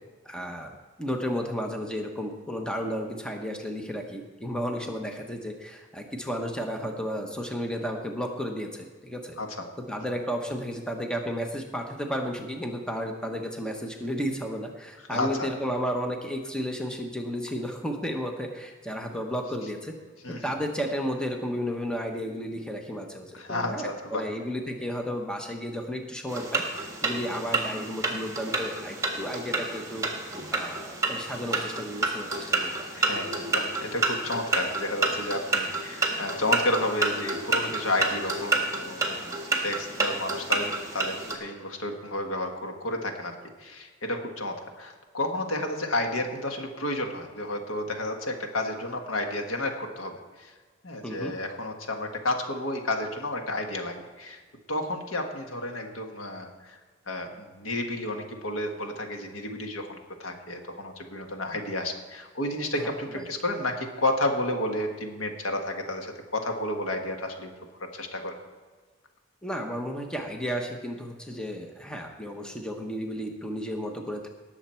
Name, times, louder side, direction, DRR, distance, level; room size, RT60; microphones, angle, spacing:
voice 1, 0.2-9.4 9.9-19.9 20.3-30.0 30.5-32.9 51.0-51.3 62.8-63.3 69.4-74.3, equal, 5° left, 3 dB, 0.9 m, -33 dB
voice 2, 15.1-15.5 20.2-20.5 23.3-24.3 27.2-27.3 32.9-43.3 43.6-50.5 50.8-54.4 54.7-56.7 57.1-67.5 67.9-68.3, left 1 dB, 80° left, 4 dB, 1.5 m, -31 dB
sound 1, 26.3-41.4, right 3 dB, 15° right, 1.5 m, -29 dB
18.5 x 7.2 x 4.4 m, 1.5 s
head